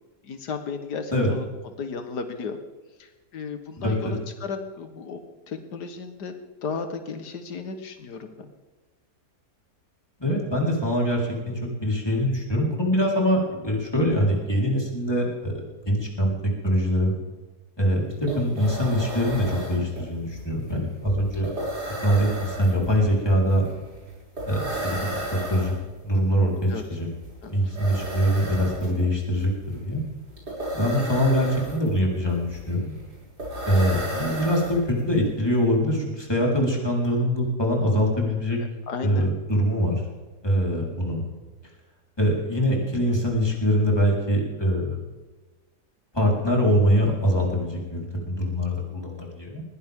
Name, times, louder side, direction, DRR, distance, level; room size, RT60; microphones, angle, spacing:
voice 1, 0.2-2.6 3.0-5.2 5.5-6.3 6.6-8.5 26.7-26.9 27.4-27.5 38.9-39.3, left 5 dB, 85° left, 7 dB, 1.9 m, -34 dB
voice 2, 3.8-4.1 10.2-16.3 16.6-17.1 17.8-21.5 22.0-23.6 24.4-25.7 26.0-27.1 27.5-30.0 30.7-33.0 33.7-38.6 39.0-40.0 40.4-41.2 42.2-45.0 46.1-49.6, equal, 15° left, -2 dB, 4.3 m, -23 dB
sound 1, 17.8-17.9 18.1-35.2, right 1 dB, 80° right, 7.2 m, -34 dB
20.5 x 16.5 x 3.7 m, 1.3 s
omnidirectional pair, 1.7 m